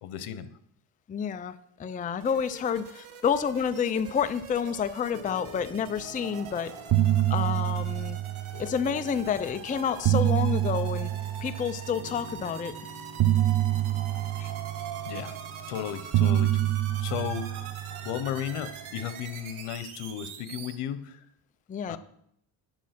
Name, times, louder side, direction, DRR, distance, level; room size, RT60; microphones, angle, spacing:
voice 1, 0.0-0.5 15.1-15.3 15.7-16.7 17.0-17.6 18.0-21.2 21.9-22.0, left 10 dB, 80° left, 12 dB, 1.1 m, -34 dB
voice 2, 1.1-6.7 7.3-8.2 8.6-11.1 11.4-12.7 14.4-14.5 21.7-22.0, left 7 dB, 20° left, 11 dB, 0.4 m, -29 dB
sound 1, 2.2-20.7, right 7 dB, 70° right, 1.8 m, -45 dB
Piano, 5.1-18.5, left 2 dB, 35° left, 1.8 m, -49 dB
sound 2, 6.2-6.5 6.7-9.1 9.7-12.2 13.2-15.6 16.1-18.7, right 13 dB, 45° right, 0.6 m, -27 dB
10.5 x 7.3 x 5.9 m, 0.72 s
cardioid pair, 110°, 50 cm